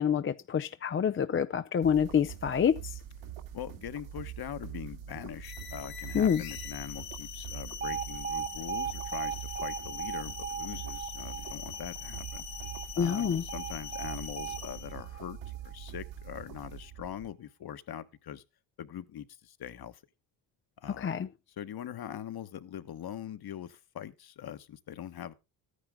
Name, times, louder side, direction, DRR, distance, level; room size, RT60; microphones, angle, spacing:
voice 1, 0.0-3.0 6.1-6.4 13.0-13.4 21.0-21.3, left 8 dB, 25° left, 0.5 m, -27 dB
sound 1, 1.8-17.3, right 10 dB, 75° right, 2.4 m, -44 dB
voice 2, 3.5-12.4 12.9-18.4 18.8-20.0 20.8-21.1 21.6-25.3, left 10 dB, 45° left, 1.3 m, -42 dB
sound 2, 5.4-15.0, left 10 dB, 85° left, 2.7 m, -43 dB
Alarm, 7.8-15.9, right 8 dB, 20° right, 0.7 m, -39 dB
13.5 x 9.9 x 3.7 m
supercardioid pair, 75°, 50 cm